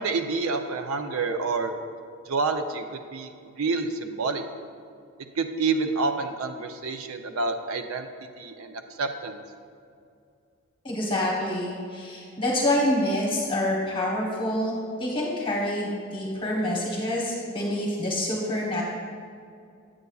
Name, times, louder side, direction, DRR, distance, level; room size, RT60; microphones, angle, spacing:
voice 1, 0.0-1.7 2.3-4.4 5.4-8.1 8.4-9.4, right 4 dB, 80° right, 7 dB, 0.5 m, -28 dB
voice 2, 10.8-18.8, left 1 dB, 25° left, -3 dB, 1.0 m, -27 dB
8.7 x 8.0 x 2.3 m, 2.3 s
head